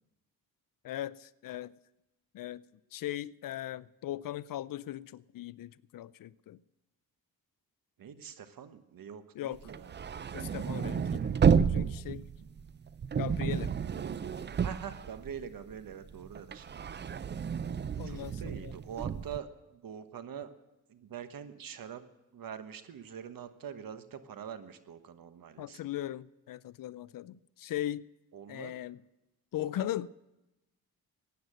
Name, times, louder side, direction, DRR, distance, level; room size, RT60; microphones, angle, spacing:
voice 1, 0.8-1.7 2.3-2.6 2.9-6.6 9.3-9.6 10.3-12.2 13.2-13.7 18.0-18.7 25.6-28.0 28.5-29.0 29.5-30.1, left 13 dB, 60° left, 0.5 m, -38 dB
voice 2, 8.0-10.0 12.4-12.5 13.9-14.1 14.6-16.9 17.9-20.5 20.9-22.0 22.3-25.9 28.3-28.8 29.8-29.9, right 8 dB, 65° right, 1.2 m, -44 dB
sound 1, 9.6-15.7 16.1-19.4, right 7 dB, 30° right, 0.5 m, -31 dB
15.5 x 9.4 x 7.7 m
cardioid pair, 80°, 37 cm